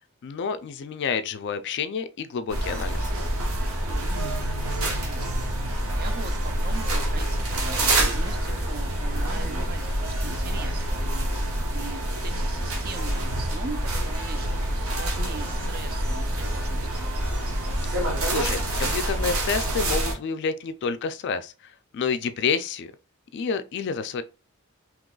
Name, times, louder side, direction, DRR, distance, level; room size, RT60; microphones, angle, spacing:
voice 1, 0.2-3.1 17.8-18.0 18.2-22.9 23.3-24.2, left 5 dB, 50° left, 0.3 m, -29 dB
sound 1, 2.5-20.1, right 1 dB, 70° right, 0.9 m, -27 dB
voice 2, 3.9-4.4 4.8-5.5 5.9-11.0 11.7-17.1, right 4 dB, 45° right, 0.4 m, -41 dB
3.8 x 2.8 x 2.3 m
head